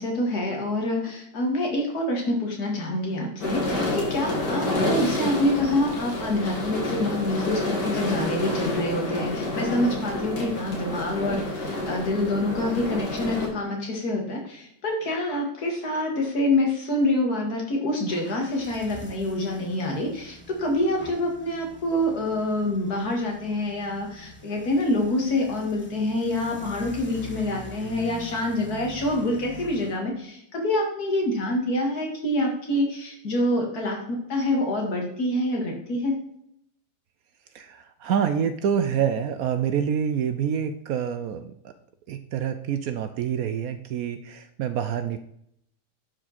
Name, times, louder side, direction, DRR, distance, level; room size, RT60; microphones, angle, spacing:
voice 1, 0.0-36.2, left 1 dB, 65° left, 1 dB, 2.4 m, -26 dB
sound 1, 3.4-13.5, left 2 dB, 80° left, 2.7 m, -29 dB
sound 2, 18.1-30.0, equal, 10° left, 0.9 m, -44 dB
voice 2, 37.5-41.7 42.1-45.2, right 8 dB, 70° right, 10 dB, 0.9 m, -27 dB
11.0 x 5.0 x 4.1 m, 0.73 s
omnidirectional pair, 1.8 m